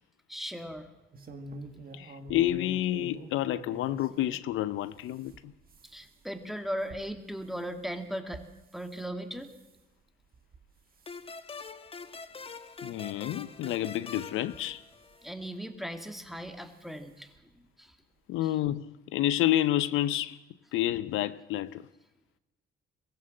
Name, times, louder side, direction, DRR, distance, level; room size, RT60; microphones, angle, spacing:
voice 1, 0.3-0.9 5.8-8.5 8.7-9.5 15.2-18.0 18.4-18.5, equal, ahead, 2.2 m, -38 dB
sound 1, 1.1-4.5 4.9-9.0 9.4-9.8 10.3-10.7 11.0-11.3 11.9-12.0 12.3-12.4 13.6-13.7 14.4-15.2 16.4-16.6 16.9-17.0 17.4-17.5, right 2 dB, 50° right, 2.1 m, -48 dB
voice 2, 1.9-5.5 12.8-14.8 18.3-20.4 20.7-21.9, left 13 dB, 85° left, 0.7 m, -29 dB
sound 2, 11.1-15.4, left 4 dB, 30° left, 1.3 m, -44 dB
22.0 x 15.0 x 7.6 m
cardioid pair, 90°, 20 cm